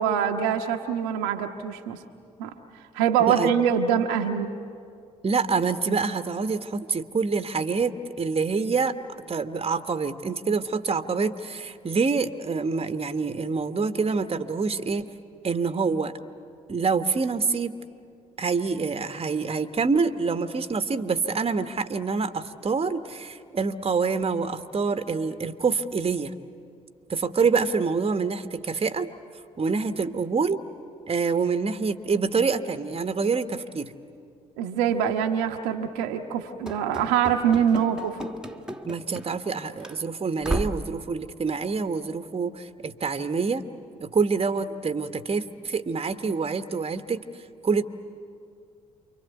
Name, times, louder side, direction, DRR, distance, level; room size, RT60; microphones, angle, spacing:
voice 1, 0.0-2.0 2.4-2.5 2.9-4.5 34.6-38.2, right 8 dB, 80° right, 4 dB, 1.1 m, -24 dB
voice 2, 5.2-8.9 9.3-15.1 15.4-16.2 16.7-17.8 18.4-26.3 27.1-29.1 29.6-30.6 31.1-33.9 38.8-43.7 44.0-47.2 47.6-47.8, right 4 dB, 35° right, 10 dB, 1.3 m, -26 dB
Run / Slam, 36.7-39.5 39.8-40.0 40.4-40.9, right 1 dB, 5° right, 1.8 m, -34 dB
28.5 x 24.0 x 8.3 m, 2.3 s
hypercardioid pair, 45°, 18 cm